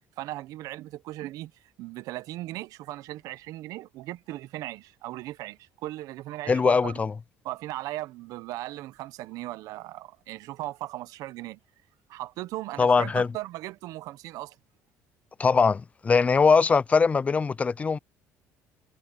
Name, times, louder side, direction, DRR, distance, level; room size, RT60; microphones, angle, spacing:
voice 1, 0.2-1.5 1.8-6.9 7.4-11.6 12.1-14.6, right 16 dB, 75° right, 0.8 m, -37 dB
voice 2, 6.5-7.1 12.8-13.3 15.4-18.0, left 5 dB, 25° left, 0.3 m, -21 dB
cardioid pair, 100°, 6 cm